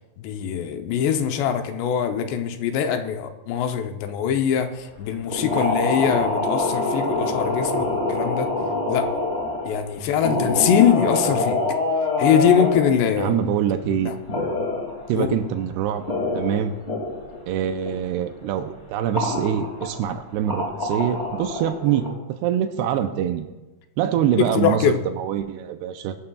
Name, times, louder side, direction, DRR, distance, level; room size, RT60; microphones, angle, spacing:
voice 1, 0.2-8.5 8.9-9.1 9.7-11.6 12.2-13.5 13.8-14.2 15.2-15.3 24.4-25.0, left 8 dB, 90° left, 6 dB, 3.0 m, -22 dB
sound 1, 5.3-9.9 10.2-12.9 14.3-15.1 15.5-15.6 15.8-17.4 17.6-18.0 18.2-18.3 19.1-20.1 20.4-22.1, left 2 dB, 20° left, 1.9 m, -25 dB
voice 2, 13.2-14.1 15.1-16.1 16.3-16.7 17.5-22.0 22.4-23.5 24.0-26.2, right 9 dB, 85° right, 7 dB, 2.7 m, -24 dB
22.0 x 11.5 x 2.4 m, 1.1 s
omnidirectional pair, 4.8 m